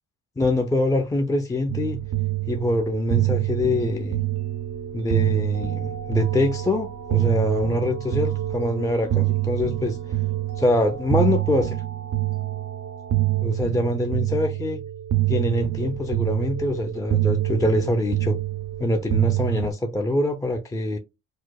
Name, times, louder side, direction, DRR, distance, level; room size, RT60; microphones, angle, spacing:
voice 1, 0.4-2.0 2.5-4.2 4.9-10.0 10.6-11.8 13.4-14.8 15.3-18.4 18.8-21.0, left 1 dB, 10° left, 0.4 m, -24 dB
sound 1, 1.7-19.7, right 15 dB, 70° right, 0.5 m, -26 dB
sound 2, 3.8-13.4, right 3 dB, 85° right, 0.9 m, -42 dB
4.7 x 2.0 x 2.2 m
cardioid pair, 90°, 30 cm